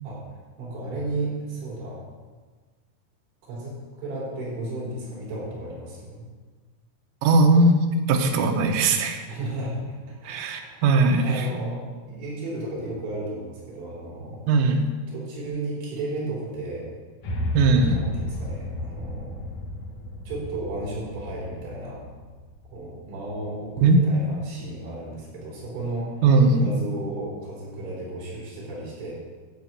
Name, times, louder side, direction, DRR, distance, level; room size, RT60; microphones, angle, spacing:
voice 1, 0.6-2.0 3.4-6.2 9.3-10.9 11.2-11.8 12.1-14.8 15.1-16.9 17.4-17.5 17.8-19.4 20.3-22.0 22.7-26.1 26.6-29.1, right 2 dB, 65° right, -6 dB, 6.4 m, -34 dB
voice 2, 7.2-7.8 8.1-9.2 10.3-11.5 14.5-14.8 17.5-18.0 23.8-24.0 26.2-26.7, right 3 dB, 85° right, 3 dB, 3.6 m, -19 dB
sound 1, 17.2-23.4, left 1 dB, 70° left, 1.8 m, -33 dB
12.5 x 5.1 x 8.7 m, 1.4 s
omnidirectional pair, 5.6 m